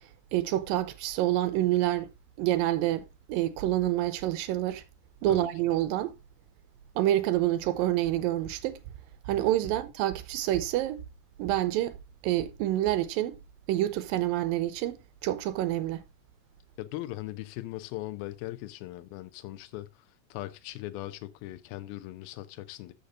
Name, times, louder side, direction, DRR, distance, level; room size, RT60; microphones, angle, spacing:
voice 1, 0.3-2.1 2.4-4.8 5.2-6.1 7.0-8.8 9.3-11.0 11.4-12.0 12.2-13.3 13.7-15.0 15.2-16.0, right 14 dB, 80° right, 2.4 m, -27 dB
voice 2, 16.8-19.9 20.3-22.9, left 16 dB, 80° left, 2.5 m, -39 dB
13.5 x 6.6 x 2.5 m
omnidirectional pair, 4.4 m